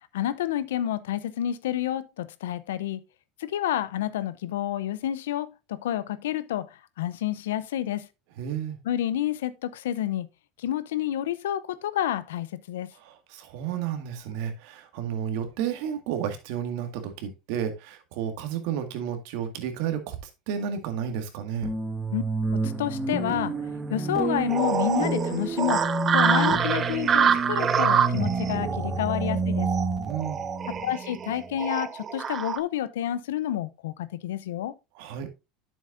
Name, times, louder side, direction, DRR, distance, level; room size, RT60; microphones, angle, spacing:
voice 1, 0.1-3.0 3.4-8.1 8.8-10.3 10.6-12.9 22.1-22.2 22.5-23.5 23.9-25.9 26.1-29.7 30.8-34.7, left 11 dB, 85° left, 0.6 m, -29 dB
voice 2, 8.4-8.8 13.0-20.2 20.5-21.7 30.1-30.4 35.0-35.3, right 8 dB, 70° right, 1.8 m, -32 dB
sound 1, 21.6-31.5, right 3 dB, 15° right, 1.8 m, -29 dB
sound 2, 24.5-32.6, right 7 dB, 35° right, 0.7 m, -26 dB
9.3 x 7.2 x 2.6 m
supercardioid pair, 95°, 0 cm